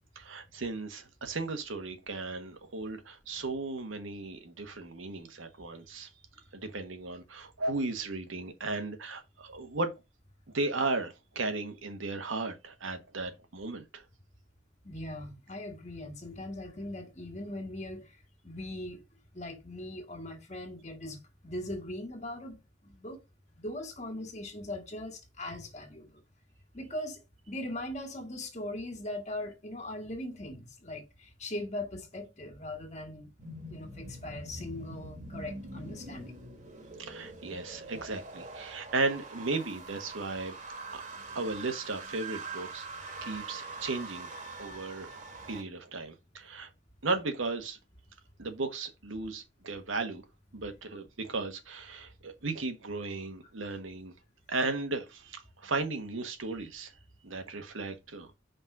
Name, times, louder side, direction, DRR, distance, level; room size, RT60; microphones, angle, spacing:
voice 1, 0.1-6.1 6.5-9.9 10.5-14.0 37.0-40.6 40.9-41.0 41.3-42.9 43.2-44.3 44.6-45.2 45.5-46.7 47.0-47.8 48.4-50.2 50.5-54.1 54.5-56.9 57.2-58.3, right 3 dB, 80° right, 1.4 m, -35 dB
voice 2, 14.8-18.0 18.4-19.0 19.3-22.6 22.8-23.2 23.6-26.2 26.7-27.2 27.5-33.3 33.7-36.4 41.3-41.4, left 1 dB, 35° left, 1.6 m, -40 dB
sound 1, 33.4-45.6, right 3 dB, 40° right, 1.4 m, -44 dB
5.3 x 3.9 x 6.0 m
head